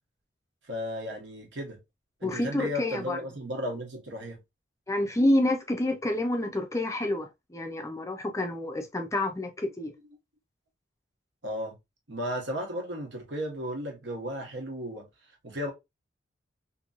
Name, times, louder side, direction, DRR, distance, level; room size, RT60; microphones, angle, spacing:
voice 1, 0.7-1.8 2.2-4.4 11.4-11.7 12.1-15.1 15.4-15.7, equal, 75° right, 1.1 m, -34 dB
voice 2, 2.2-3.2 4.9-9.9, left 1 dB, 15° left, 0.4 m, -28 dB
2.9 x 2.7 x 2.5 m
head